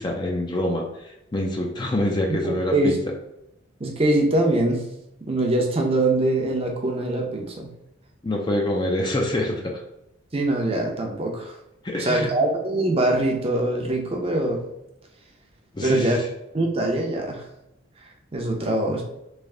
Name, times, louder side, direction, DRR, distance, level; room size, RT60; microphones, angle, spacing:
voice 1, 0.0-2.9 8.2-9.8 11.8-12.3 15.7-16.2, left 1 dB, 20° left, 0 dB, 0.4 m, -26 dB
voice 2, 2.3-3.0 3.8-4.8 5.3-7.7 10.3-11.6 12.0-14.6 15.8-16.2 16.5-17.4 18.3-19.0, right 1 dB, 30° right, 1 dB, 0.6 m, -23 dB
3.3 x 2.6 x 3.6 m, 0.86 s
head